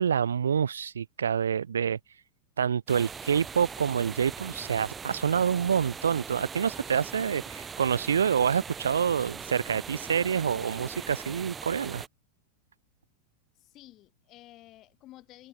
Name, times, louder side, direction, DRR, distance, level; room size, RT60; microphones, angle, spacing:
voice 1, 0.0-2.0 2.6-12.0, right 7 dB, 70° right, 0.4 m, -27 dB
sound 1, 2.9-12.1, right 6 dB, 20° right, 0.6 m, -41 dB
voice 2, 13.5-15.5, left 16 dB, 35° left, 4.3 m, -52 dB
figure-of-eight pair, 90°, 0 cm